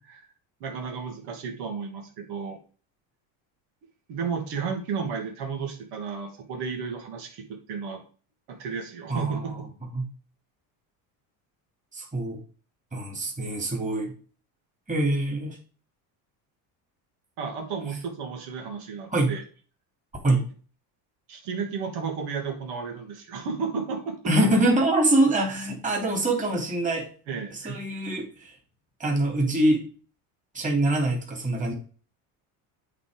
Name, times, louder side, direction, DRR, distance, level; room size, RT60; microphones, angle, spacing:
voice 1, 0.6-2.6 4.1-8.0 8.5-9.5 17.4-19.4 20.2-20.4 21.3-24.2 27.3-27.8, right 5 dB, 75° right, 1 dB, 2.8 m, -33 dB
voice 2, 9.1-9.6 9.9-10.1 11.9-12.4 12.9-14.1 14.9-15.6 19.1-19.3 20.2-20.4 24.2-27.1 27.5-28.5 29.0-29.8 30.5-31.7, right 1 dB, 20° right, 0 dB, 3.3 m, -24 dB
8.5 x 4.3 x 5.2 m, 0.39 s
cardioid pair, 135°, 41 cm